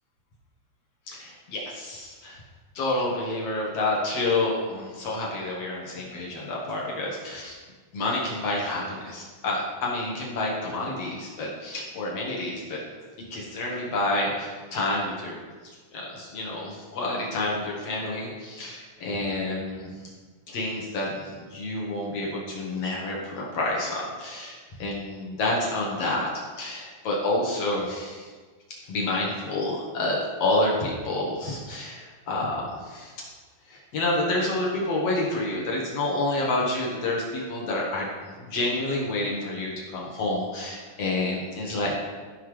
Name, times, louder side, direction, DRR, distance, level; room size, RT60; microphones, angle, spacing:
voice 1, 1.1-2.4 2.7-7.6 7.9-12.8 13.3-15.4 15.6-20.0 20.5-26.3 26.6-28.3 28.9-33.3 33.7-38.1 38.4-41.9, left 2 dB, 70° left, -3 dB, 1.5 m, -29 dB
16.0 x 5.8 x 3.2 m, 1.4 s
omnidirectional pair, 5.0 m